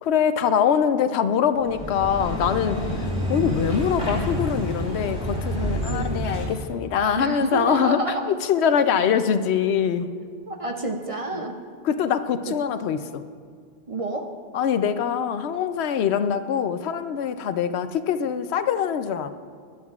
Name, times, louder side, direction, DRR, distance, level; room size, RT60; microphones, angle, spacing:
voice 1, 0.0-8.0 8.3-10.1 11.8-13.2 14.5-19.3, left 7 dB, 80° left, 11 dB, 0.9 m, -23 dB
sound 1, 1.6-6.7, equal, 5° right, 3.5 m, -28 dB
voice 2, 5.9-6.2 7.2-8.4 10.5-11.6 12.5-12.6 13.9-14.4, right 2 dB, 40° right, 4 dB, 0.6 m, -29 dB
20.0 x 11.0 x 2.4 m, 2.1 s
omnidirectional pair, 1.1 m